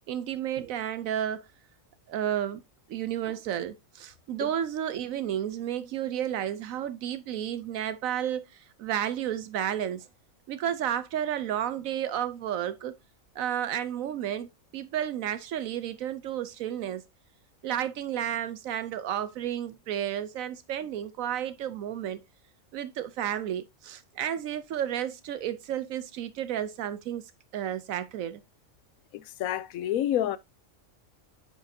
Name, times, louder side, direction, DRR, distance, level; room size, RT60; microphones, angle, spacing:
voice 1, 0.1-1.4 2.1-2.6 2.9-10.1 10.5-12.9 13.4-17.0 17.6-22.2 22.7-27.2 27.5-28.4, right 10 dB, 80° right, 1.1 m, -32 dB
voice 2, 29.1-30.4, left 11 dB, 90° left, 1.1 m, -28 dB
9.4 x 6.5 x 2.6 m
omnidirectional pair, 1.4 m